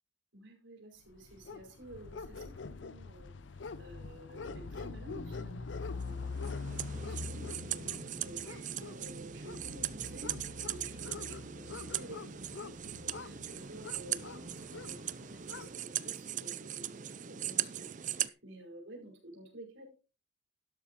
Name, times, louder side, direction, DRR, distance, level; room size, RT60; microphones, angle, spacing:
voice 1, 0.3-19.9, right 1 dB, 75° right, 1 dB, 5.2 m, -52 dB
sound 1, 1.2-15.7, left 4 dB, 70° left, 0.6 m, -44 dB
sound 2, 6.0-18.3, right 10 dB, 40° right, 0.5 m, -39 dB
13.0 x 11.5 x 3.1 m, 0.33 s
head